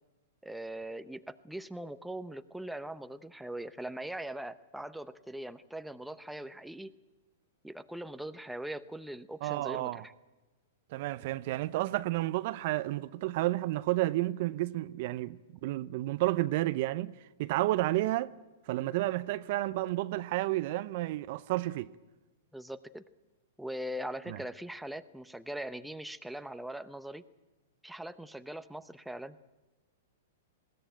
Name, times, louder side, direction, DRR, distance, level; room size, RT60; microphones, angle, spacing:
voice 1, 0.4-6.9 7.6-10.1 22.5-23.0 23.6-27.2 27.8-29.4, right 1 dB, 5° right, 0.8 m, -41 dB
voice 2, 9.4-10.0 10.9-17.1 17.4-18.3 18.7-21.9 24.3-24.4, right 17 dB, 55° right, 0.6 m, -31 dB
20.5 x 16.5 x 9.1 m
hypercardioid pair, 125°, 0 cm